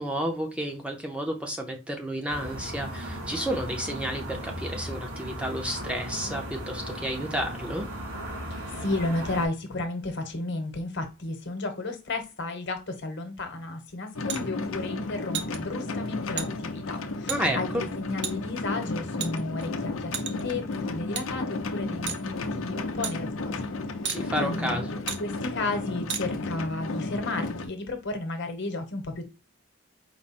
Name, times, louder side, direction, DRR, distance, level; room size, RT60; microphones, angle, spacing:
voice 1, 0.0-7.9 17.3-17.8 24.1-25.0, equal, 5° right, 0.7 m, -31 dB
sound 1, 2.3-9.5, right 1 dB, 85° right, 2.8 m, -36 dB
voice 2, 8.7-23.7 24.4-24.8 25.2-29.2, left 2 dB, 60° left, 1.1 m, -33 dB
sound 2, 14.1-27.7, left 3 dB, 75° left, 0.6 m, -33 dB
sound 3, 14.3-14.4 15.3-15.6 16.4-16.5 17.3-17.4 18.2-18.3 19.2-19.6 20.1-20.5 21.1-21.3 22.1-22.2 23.0-23.1 24.0-24.2 25.1-25.2 26.1-26.2, right 8 dB, 60° right, 0.6 m, -32 dB
4.7 x 2.1 x 4.2 m
head